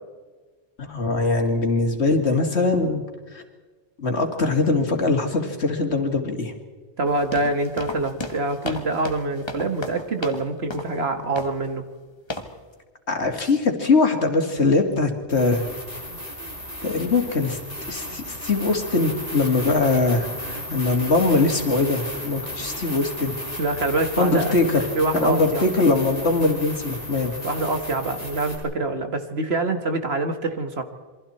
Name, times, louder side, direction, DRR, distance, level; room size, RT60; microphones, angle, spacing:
voice 1, 0.8-3.0 3.3-3.4 4.0-6.5 13.1-15.6 16.8-17.6 17.9-23.3 24.2-24.9 25.1-27.3, left 3 dB, 70° left, 4 dB, 2.6 m, -22 dB
sound 1, 7.0-10.4 10.7-11.0 11.4-11.6 12.3-12.6, left 1 dB, 25° left, 1.6 m, -34 dB
voice 2, 7.0-11.8 23.6-24.5 25.0-25.6 27.4-30.8, right 2 dB, 65° right, 7 dB, 2.0 m, -25 dB
sound 2, 15.3-28.6, equal, 35° right, 4.2 m, -34 dB
28.0 x 23.0 x 4.4 m, 1.4 s
omnidirectional pair, 1.2 m